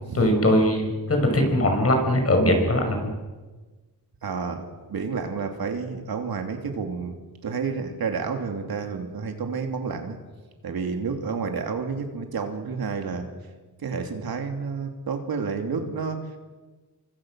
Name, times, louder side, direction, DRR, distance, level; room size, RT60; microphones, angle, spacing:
voice 1, 0.1-3.0, left 1 dB, 35° left, 3 dB, 5.9 m, -20 dB
voice 2, 4.2-7.2 7.4-10.2 10.6-13.3 13.8-16.4, right 5 dB, 65° right, 4 dB, 3.1 m, -30 dB
27.5 x 24.5 x 6.5 m, 1.3 s
wide cardioid pair, 120°, 40 cm